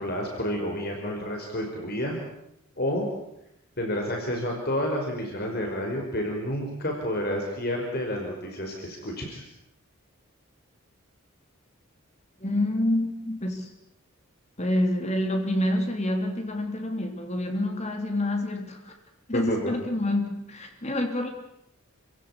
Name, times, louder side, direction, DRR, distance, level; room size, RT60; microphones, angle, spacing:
voice 1, 0.0-2.2 2.8-3.1 3.8-9.4 19.3-19.7, equal, 45° left, 1 dB, 5.1 m, -30 dB
voice 2, 12.4-13.7 14.6-18.9 19.3-21.3, left 1 dB, 30° left, 4 dB, 3.1 m, -27 dB
29.0 x 17.0 x 9.7 m, 0.81 s
head